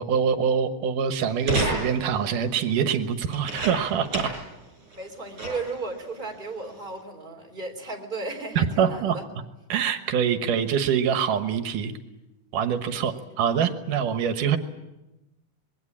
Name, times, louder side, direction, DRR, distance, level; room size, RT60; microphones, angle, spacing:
voice 1, 0.0-4.3 8.6-9.2 9.7-11.9 12.5-14.6, right 7 dB, 85° right, 8 dB, 2.9 m, -24 dB
sound 1, 1.4-2.2 3.3-4.5 4.9-5.0 5.4-5.8 6.6-6.7, right 2 dB, 65° right, 8.0 m, -29 dB
voice 2, 4.9-9.2 12.9-13.2, right 3 dB, 15° right, 2 dB, 3.7 m, -35 dB
26.0 x 21.5 x 8.8 m, 0.96 s
omnidirectional pair, 3.6 m